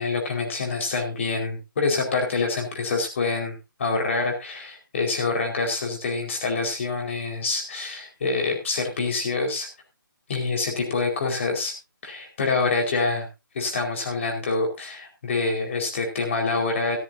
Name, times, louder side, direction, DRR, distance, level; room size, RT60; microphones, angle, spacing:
voice 1, 0.0-9.7 10.3-11.7 12.0-13.3 13.5-17.0, left 3 dB, 35° left, 2 dB, 4.6 m, -26 dB
15.0 x 14.0 x 2.7 m, 0.26 s
figure-of-eight pair, 145°, 11 cm